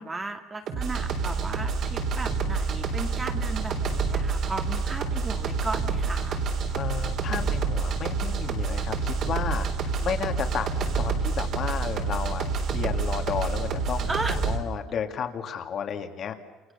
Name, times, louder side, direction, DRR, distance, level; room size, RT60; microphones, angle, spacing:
voice 1, 0.0-6.4 14.1-14.4, right 3 dB, 15° right, 5 dB, 1.8 m, -35 dB
sound 1, 0.7-14.6, right 4 dB, 45° right, 3.6 m, -28 dB
voice 2, 6.7-9.7 10.0-12.4 12.7-16.3, left 7 dB, 35° left, 5 dB, 2.2 m, -32 dB
29.0 x 29.0 x 6.9 m, 1.2 s
cardioid pair, 170°, 0 cm